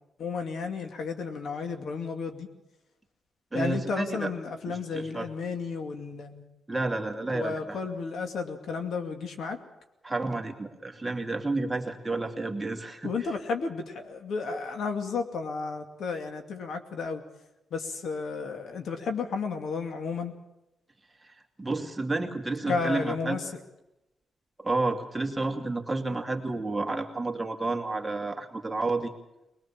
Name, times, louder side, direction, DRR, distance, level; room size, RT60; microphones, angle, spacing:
voice 1, 0.2-2.5 3.5-6.4 7.3-9.6 13.0-17.2 17.7-20.3 22.7-23.4, left 4 dB, 70° left, 5 dB, 2.4 m, -32 dB
voice 2, 3.5-4.3 4.7-5.3 6.7-7.8 10.0-13.1 21.2-23.4 24.6-29.1, right 2 dB, 15° right, 2 dB, 2.5 m, -31 dB
21.5 x 21.0 x 7.4 m, 0.92 s
cardioid pair, 95°, 0 cm